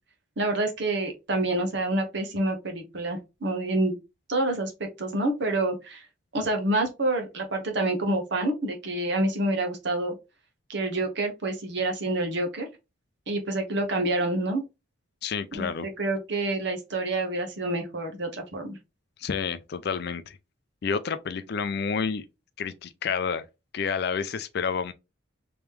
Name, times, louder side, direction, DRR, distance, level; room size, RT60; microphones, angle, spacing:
voice 1, 0.4-4.0 4.3-6.0 6.3-10.1 10.7-12.7 13.3-14.6 15.5-18.8, right 2 dB, 55° right, 0.9 m, -27 dB
voice 2, 15.2-15.9 19.2-20.4 20.8-22.3 22.6-23.4 23.7-24.9, left 6 dB, 50° left, 0.4 m, -29 dB
3.4 x 3.0 x 3.2 m
head